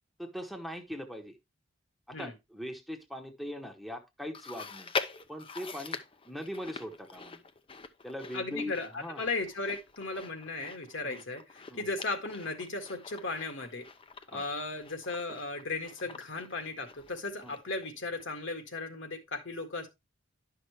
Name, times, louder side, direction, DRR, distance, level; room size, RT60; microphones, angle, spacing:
voice 1, 0.2-1.4 2.1-4.9 5.3-6.0 6.2-7.4 8.0-9.3 11.0-11.2 11.7-11.9 14.3-14.5 17.4-17.5, equal, ahead, 1.0 m, -41 dB
Chewing mastication, 4.3-17.9 18.2-18.3 19.1-19.2, left 5 dB, 25° left, 0.6 m, -43 dB
voice 2, 8.3-13.9 14.3-19.9, left 3 dB, 70° left, 1.8 m, -36 dB
11.0 x 5.8 x 3.2 m
head